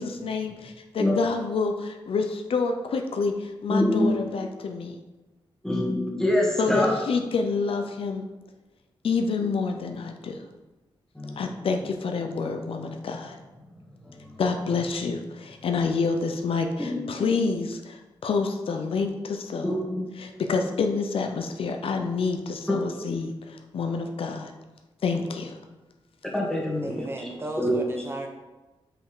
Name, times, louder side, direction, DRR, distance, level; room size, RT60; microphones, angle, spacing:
voice 1, 0.0-5.0 6.6-8.3 9.0-10.4 11.4-13.4 14.4-19.7 20.2-24.5 25.0-25.6, left 4 dB, 75° left, 5 dB, 0.7 m, -28 dB
voice 2, 3.7-4.1 5.6-7.0 11.1-11.5 14.0-14.3 16.9-17.1 19.6-20.1 22.7-22.8 26.3-27.3 27.6-27.8, left 1 dB, 5° left, -3 dB, 1.6 m, -25 dB
voice 3, 26.8-28.3, right 1 dB, 25° right, 2 dB, 0.8 m, -34 dB
5.8 x 5.2 x 5.0 m, 1.1 s
wide cardioid pair, 130°, 10 cm